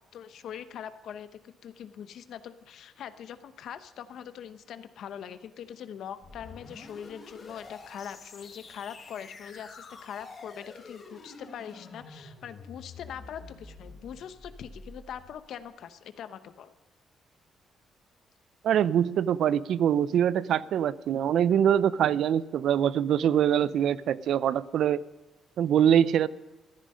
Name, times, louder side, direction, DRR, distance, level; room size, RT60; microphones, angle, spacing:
voice 1, 0.1-16.7, left 9 dB, 70° left, 11 dB, 0.9 m, -42 dB
sound 1, 6.2-15.4, left 3 dB, 40° left, 3.8 m, -48 dB
voice 2, 18.6-25.0 25.6-26.3, right 9 dB, 70° right, 18 dB, 0.4 m, -24 dB
15.0 x 10.0 x 5.4 m, 1.2 s
cardioid pair, 90°, 0 cm